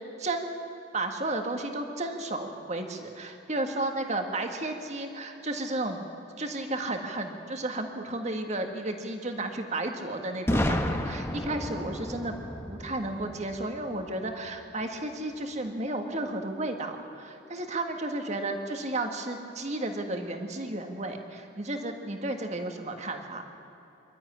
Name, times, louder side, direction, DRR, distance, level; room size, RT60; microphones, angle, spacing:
voice 1, 0.2-0.6 0.9-6.0 6.4-12.4 12.7-23.4, right 2 dB, 40° right, 5 dB, 1.9 m, -33 dB
Boom, 10.5-14.3, left 1 dB, 15° left, 1.2 m, -31 dB
24.0 x 13.0 x 9.9 m, 3.0 s
head